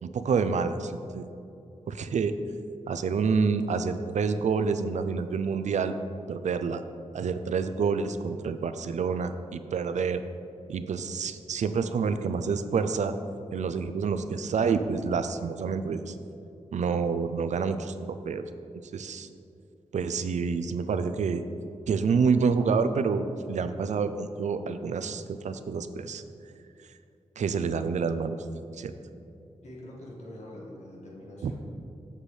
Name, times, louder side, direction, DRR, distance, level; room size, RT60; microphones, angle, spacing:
voice 1, 0.0-1.3 1.9-2.4 2.9-5.9 6.3-6.8 7.1-10.2 10.7-13.1 13.5-16.2 16.7-18.4 18.9-19.3 19.9-21.4 21.9-26.2 27.4-28.4 28.8-28.9 31.4-31.5, right 5 dB, 70° right, 10 dB, 0.4 m, -28 dB
voice 2, 29.6-31.6, left 1 dB, 65° left, -4 dB, 1.7 m, -44 dB
7.5 x 6.7 x 3.2 m, 2.7 s
wide cardioid pair, 75°, 13 cm